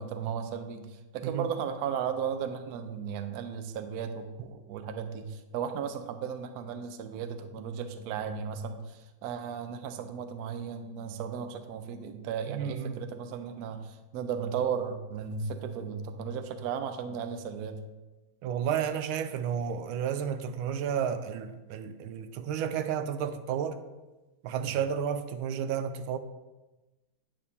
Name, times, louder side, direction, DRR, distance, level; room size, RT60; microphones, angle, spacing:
voice 1, 0.0-17.8 24.7-24.8, right 7 dB, 70° right, 0.9 m, -35 dB
voice 2, 12.5-13.0 18.4-23.8 24.4-26.2, right 8 dB, 85° right, 1.4 m, -32 dB
8.7 x 8.2 x 2.8 m
omnidirectional pair, 2.2 m